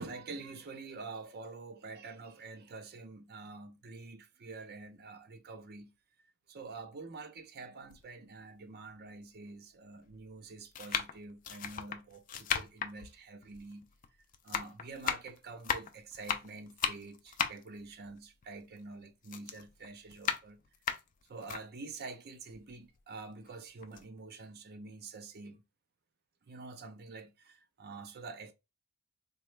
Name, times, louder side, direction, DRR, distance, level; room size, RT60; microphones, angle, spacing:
voice 1, 0.0-5.9 6.5-13.9 14.4-20.6 21.3-25.6 26.5-28.5, right 3 dB, 45° right, 0.5 m, -47 dB
sound 1, 7.9-8.0 8.9-9.0 10.0-10.2 10.7-14.1 14.3-18.9 19.2-21.6 22.1-22.2 22.5-23.5 23.8-24.0, left 7 dB, 35° left, 0.3 m, -36 dB
3.9 x 2.2 x 3.1 m
head